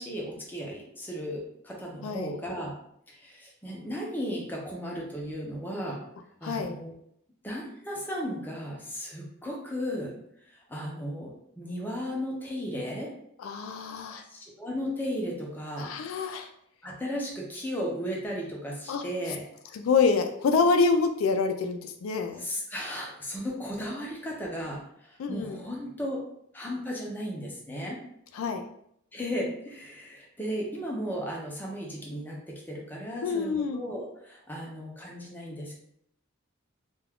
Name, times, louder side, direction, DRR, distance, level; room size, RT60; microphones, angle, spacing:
voice 1, 0.0-2.8 3.1-6.0 6.4-6.9 7.4-10.1 10.7-11.3 11.6-13.1 14.1-16.0 16.8-19.4 22.4-26.2 26.5-28.0 29.1-35.8, equal, 10° left, -3 dB, 0.6 m, -35 dB
voice 2, 2.0-2.3 6.4-6.7 13.4-14.2 15.8-16.5 18.9-19.3 19.7-22.5 25.2-25.6 28.3-28.7 33.2-33.8, left 4 dB, 80° left, 6 dB, 0.3 m, -27 dB
2.3 x 2.3 x 3.4 m, 0.71 s
head